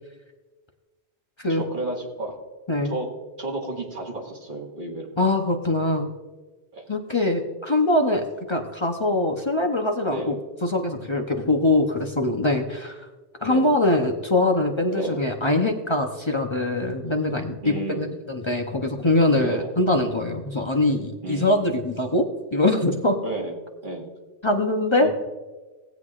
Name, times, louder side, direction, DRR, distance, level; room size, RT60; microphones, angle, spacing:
voice 1, 1.5-2.3 2.9-3.1 3.4-5.1 6.7-6.9 10.1-10.4 13.5-13.7 14.9-15.2 17.6-18.1 19.4-19.7 21.2-21.7 23.2-23.5 23.8-24.1 25.0-25.1, right 2 dB, 45° right, -1 dB, 1.9 m, -32 dB
voice 2, 5.2-6.1 6.9-10.4 10.6-13.1 13.4-23.2 24.4-25.1, left 2 dB, 30° left, 3 dB, 0.7 m, -23 dB
18.0 x 8.0 x 2.4 m, 1.3 s
omnidirectional pair, 1.2 m